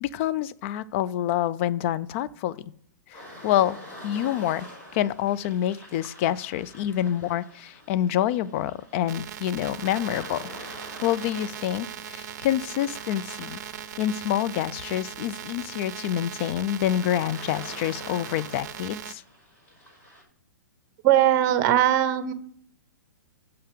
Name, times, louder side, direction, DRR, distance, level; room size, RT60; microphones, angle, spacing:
voice 1, 0.0-2.7 3.1-3.8 4.0-4.7 4.9-10.4 11.0-13.6 14.0-19.2, left 12 dB, 40° left, 17 dB, 0.4 m, -27 dB
sound 1, 3.1-20.2, equal, 20° left, 4.3 m, -47 dB
sound 2, 9.1-19.1, right 10 dB, 60° right, 0.6 m, -39 dB
voice 2, 21.0-22.3, right 11 dB, 35° right, 12 dB, 0.8 m, -20 dB
6.7 x 5.6 x 6.7 m, 0.62 s
hypercardioid pair, 125°, 10 cm